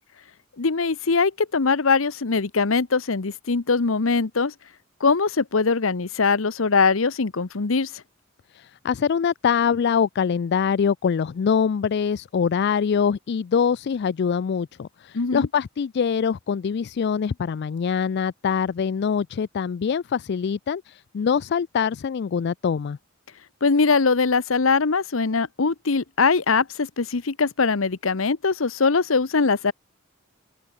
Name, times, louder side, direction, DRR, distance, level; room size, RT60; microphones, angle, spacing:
voice 1, 0.6-4.5 5.0-7.9 15.1-15.5 23.6-29.7, left 4 dB, 70° left, 0.9 m, -22 dB
voice 2, 8.6-23.0, left 6 dB, 55° left, 0.4 m, -24 dB
head